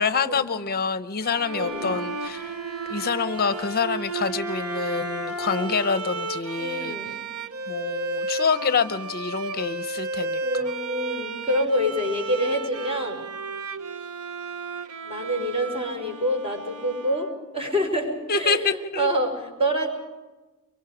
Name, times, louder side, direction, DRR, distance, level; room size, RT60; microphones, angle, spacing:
voice 1, 0.0-2.5 2.9-6.9 7.7-10.7 18.3-19.1, left 5 dB, 45° left, 12 dB, 0.7 m, -26 dB
Bowed string instrument, 1.2-17.8, right 3 dB, 80° right, 1.0 m, -34 dB
voice 2, 1.5-2.0 6.6-7.2 10.4-13.2 15.0-19.9, equal, 25° right, 3 dB, 5.5 m, -27 dB
Bowed string instrument 2, 1.6-6.0, right 2 dB, 5° right, 4.2 m, -34 dB
24.0 x 23.5 x 5.0 m, 1.2 s
head